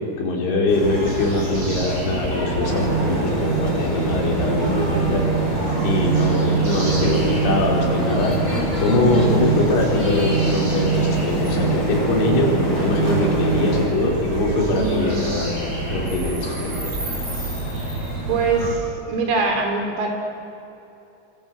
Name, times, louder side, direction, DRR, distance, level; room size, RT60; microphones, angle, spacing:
voice 1, 0.0-5.2 5.8-8.3 8.8-15.6 15.9-16.9, left 2 dB, 80° left, -2 dB, 7.2 m, -22 dB
sound 1, 0.7-18.7, right 1 dB, 40° right, 8.4 m, -28 dB
sound 2, 2.6-13.9, right 3 dB, 10° left, 3.7 m, -23 dB
voice 2, 9.0-9.3 14.7-15.2 18.3-20.1, right 4 dB, 85° right, 2 dB, 6.5 m, -23 dB
27.0 x 26.0 x 8.0 m, 2.8 s
omnidirectional pair, 5.5 m